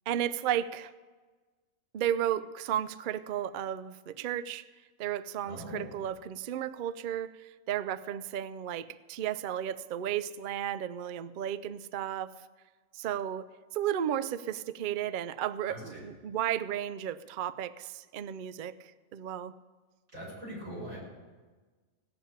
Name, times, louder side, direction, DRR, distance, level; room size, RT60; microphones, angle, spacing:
voice 1, 0.1-0.9 1.9-4.6 5.0-12.4 12.9-19.5, right 10 dB, 90° right, 15 dB, 0.4 m, -34 dB
voice 2, 5.4-5.9 15.7-16.0 20.1-21.0, equal, 65° right, -6 dB, 6.4 m, -41 dB
17.0 x 7.0 x 8.6 m, 1.3 s
omnidirectional pair, 1.4 m